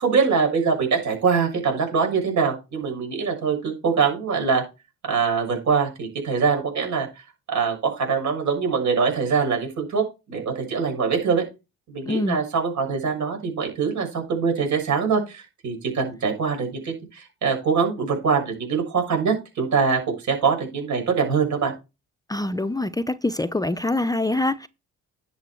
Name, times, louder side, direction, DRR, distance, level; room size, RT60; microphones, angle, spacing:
voice 1, 0.0-4.6 5.1-7.1 7.5-11.4 11.9-21.7, right 5 dB, 70° right, 6.8 m, -23 dB
voice 2, 12.1-12.4 22.3-24.7, left 2 dB, 10° left, 0.6 m, -25 dB
11.0 x 7.1 x 4.5 m
cardioid pair, 90°, 30 cm